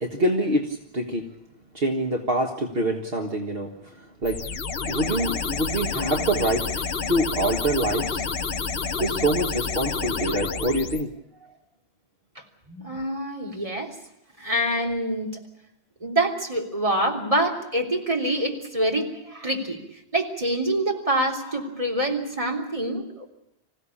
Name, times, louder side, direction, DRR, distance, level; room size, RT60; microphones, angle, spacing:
voice 1, 0.0-1.3 1.7-4.4 4.9-6.7 7.1-8.2 9.0-11.1, right 1 dB, 65° right, 3 dB, 1.9 m, -25 dB
sound 1, 4.2-11.0, left 5 dB, 65° left, 1.3 m, -29 dB
voice 2, 8.5-8.9 12.4-13.9 14.4-15.3 16.0-19.8 20.1-23.3, right 1 dB, 35° right, 1 dB, 3.5 m, -26 dB
26.5 x 16.0 x 8.6 m, 0.82 s
omnidirectional pair, 1.1 m